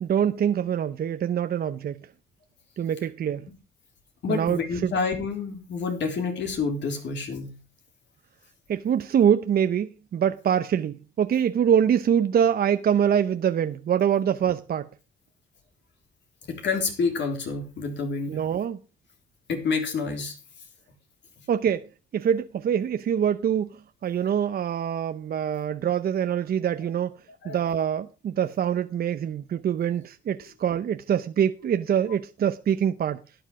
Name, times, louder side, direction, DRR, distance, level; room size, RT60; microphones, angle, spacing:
voice 1, 0.0-2.0 2.8-3.5 4.3-4.9 8.7-14.9 18.3-18.8 21.5-21.9 22.1-27.1 27.4-33.2, right 8 dB, 50° right, 0.7 m, -24 dB
voice 2, 4.2-7.5 16.5-18.4 19.5-20.3 27.4-27.6, left 4 dB, 65° left, 3.6 m, -28 dB
12.0 x 9.0 x 4.8 m
cardioid pair, 90°, 20 cm